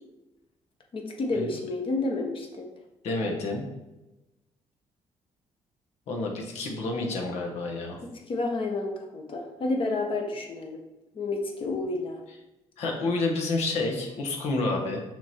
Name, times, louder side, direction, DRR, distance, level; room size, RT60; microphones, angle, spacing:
voice 1, 0.9-2.6 8.0-10.8 11.1-12.2, left 2 dB, 50° left, 1 dB, 1.3 m, -30 dB
voice 2, 3.0-3.6 6.1-8.0 12.8-15.0, left 2 dB, 80° left, 1 dB, 1.3 m, -29 dB
6.0 x 3.8 x 4.3 m, 1.0 s
cardioid pair, 80°, 11 cm